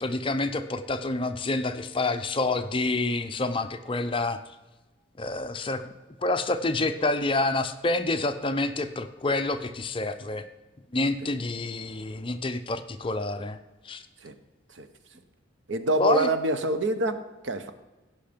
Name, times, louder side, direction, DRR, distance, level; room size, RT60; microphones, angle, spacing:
voice 1, 0.0-4.4 5.2-5.8 6.2-10.4 10.9-13.6 13.8-14.0 16.0-16.3, left 2 dB, 25° left, 9 dB, 0.6 m, -28 dB
voice 2, 15.7-17.2 17.4-17.7, right 1 dB, 75° right, 10 dB, 0.9 m, -26 dB
16.0 x 5.6 x 5.1 m, 1.1 s
head